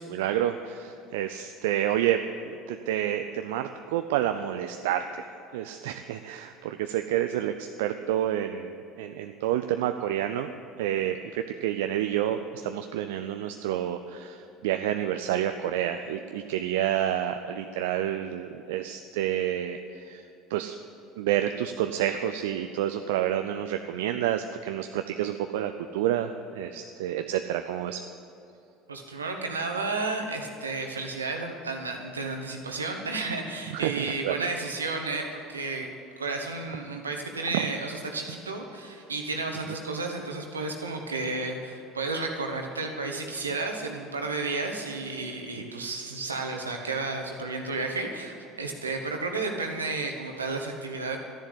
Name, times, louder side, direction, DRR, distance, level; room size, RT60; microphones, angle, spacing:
voice 1, 0.1-10.5 10.8-20.2 20.5-20.8 21.2-28.0 33.7-34.5 37.5-37.7, right 11 dB, 70° right, 7 dB, 0.5 m, -29 dB
voice 2, 28.9-35.9 36.2-51.2, right 3 dB, 85° right, 3 dB, 1.5 m, -32 dB
12.5 x 10.5 x 8.1 m, 2.8 s
figure-of-eight pair, 65°, 0 cm